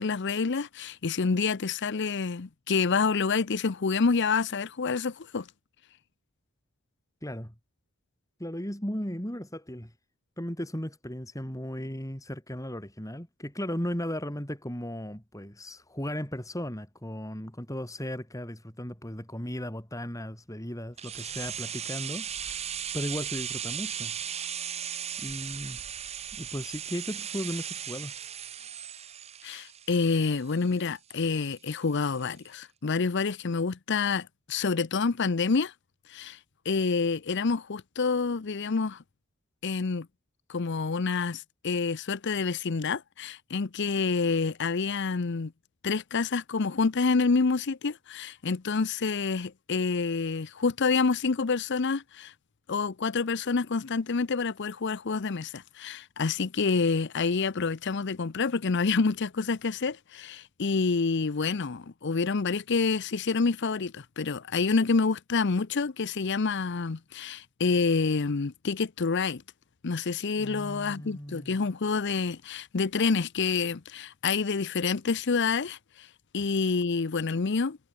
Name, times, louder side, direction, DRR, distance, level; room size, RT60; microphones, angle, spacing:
voice 1, 0.0-5.5 29.4-35.7 36.1-36.4 36.7-39.0 39.6-40.1 40.5-45.5 45.8-52.3 52.7-69.4 69.8-76.1 76.3-77.8, left 4 dB, 50° left, 0.6 m, -28 dB
voice 2, 7.2-7.5 8.4-9.9 10.4-22.6 22.9-24.2 25.2-25.8 26.3-28.1 70.4-71.6, equal, 15° left, 4.6 m, -36 dB
sound 1, 21.0-30.8 31.1-31.2, right 9 dB, 30° right, 1.0 m, -37 dB
head